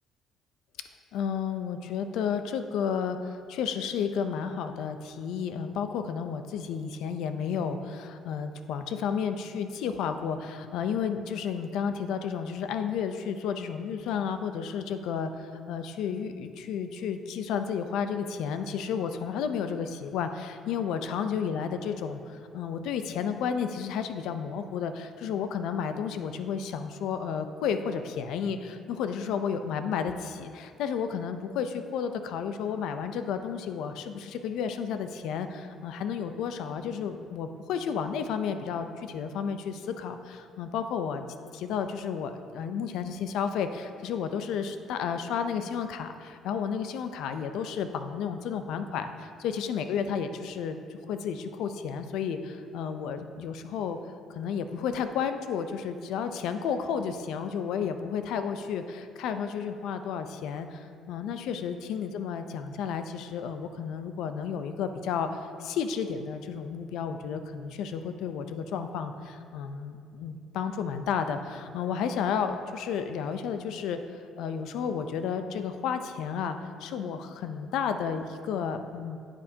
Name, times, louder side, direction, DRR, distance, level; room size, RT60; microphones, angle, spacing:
voice 1, 1.1-41.2 41.5-54.0 54.3-79.2, left 7 dB, 80° left, 8 dB, 0.5 m, -32 dB
9.6 x 9.0 x 2.8 m, 2.3 s
cardioid pair, 130°, 0 cm